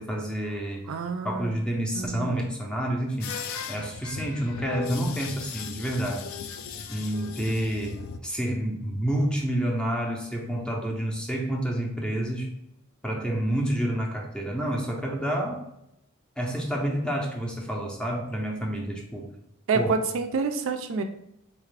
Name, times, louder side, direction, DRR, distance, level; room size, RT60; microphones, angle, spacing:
voice 1, 0.0-0.9 1.2-3.4 3.7-6.3 6.9-12.5 13.0-15.6 16.4-19.3 19.7-19.9, right 1 dB, 5° left, 0 dB, 0.5 m, -29 dB
voice 2, 0.9-1.5 1.9-2.4 19.7-21.0, right 4 dB, 65° right, 7 dB, 0.3 m, -28 dB
sound 1, 3.2-8.2, left 6 dB, 65° left, 0.3 m, -37 dB
3.8 x 2.4 x 3.3 m, 0.82 s
head